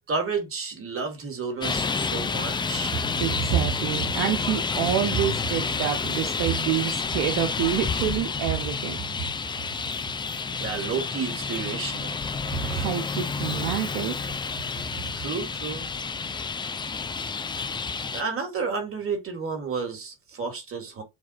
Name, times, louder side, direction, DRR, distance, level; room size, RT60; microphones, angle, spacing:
voice 1, 0.1-3.0 10.6-12.3 15.1-15.9 18.1-21.0, right 5 dB, 40° right, 1.9 m, -31 dB
Traffic noise roadway noise, 1.6-18.2, left 5 dB, 15° left, 0.4 m, -29 dB
voice 2, 3.2-9.0 12.5-14.2, right 11 dB, 70° right, 0.7 m, -27 dB
7.1 x 2.4 x 2.4 m
supercardioid pair, 75°, 34 cm